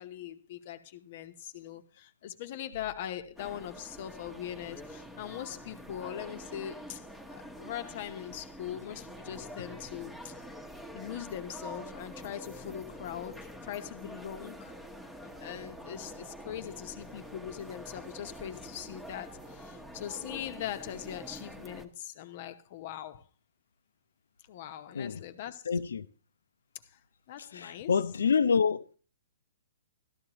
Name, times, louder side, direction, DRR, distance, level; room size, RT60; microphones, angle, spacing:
voice 1, 0.0-10.3 10.9-14.7 15.2-23.2 24.5-25.6 26.8-27.0 27.3-27.9, left 10 dB, 50° left, 0.9 m, -41 dB
sound 1, 3.4-21.9, equal, 5° right, 1.1 m, -46 dB
voice 2, 25.7-26.1 27.5-29.0, left 6 dB, 75° left, 0.6 m, -27 dB
13.0 x 12.0 x 3.0 m
figure-of-eight pair, 125°, 0 cm